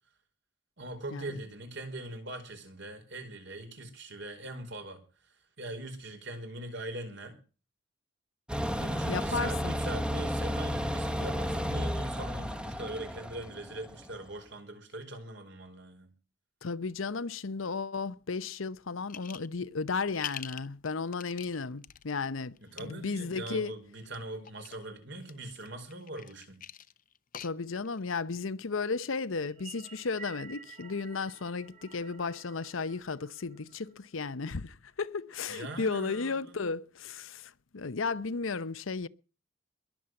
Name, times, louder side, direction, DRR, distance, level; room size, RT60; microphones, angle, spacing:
voice 1, 0.8-5.0 5.6-7.4 8.8-16.1 22.6-26.7 35.5-36.5, right 1 dB, 60° right, 5.0 m, -41 dB
sound 1, 8.5-14.2, equal, 5° right, 1.3 m, -33 dB
voice 2, 9.1-9.8 16.6-23.7 27.4-39.1, left 4 dB, 75° left, 0.8 m, -34 dB
sound 2, 19.1-19.6 19.9-22.0 22.6-22.8 24.0-24.8 25.2-28.0, left 9 dB, 40° left, 0.8 m, -44 dB
sound 3, 29.5-34.0, right 6 dB, 35° right, 2.0 m, -51 dB
22.0 x 7.4 x 7.6 m
head